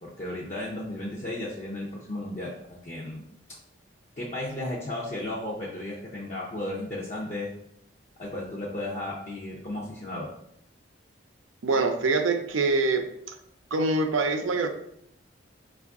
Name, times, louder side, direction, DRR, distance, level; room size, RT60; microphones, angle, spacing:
voice 1, 0.0-2.5 2.8-3.2 4.2-7.5 8.2-10.3, left 1 dB, 35° left, -5 dB, 0.5 m, -34 dB
voice 2, 11.6-13.0 13.7-14.7, right 3 dB, 80° right, 6 dB, 0.5 m, -24 dB
4.5 x 2.4 x 3.5 m, 0.74 s
head